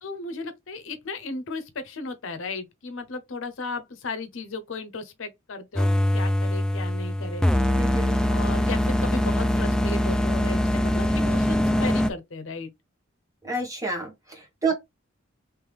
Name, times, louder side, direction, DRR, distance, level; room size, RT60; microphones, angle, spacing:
voice 1, 0.0-7.5 8.3-12.7, left 3 dB, 70° left, 0.7 m, -35 dB
sound 1, 5.8-12.1, left 1 dB, 5° left, 0.3 m, -23 dB
voice 2, 7.8-8.2 13.4-14.7, right 3 dB, 15° right, 1.5 m, -29 dB
3.4 x 3.0 x 3.4 m
head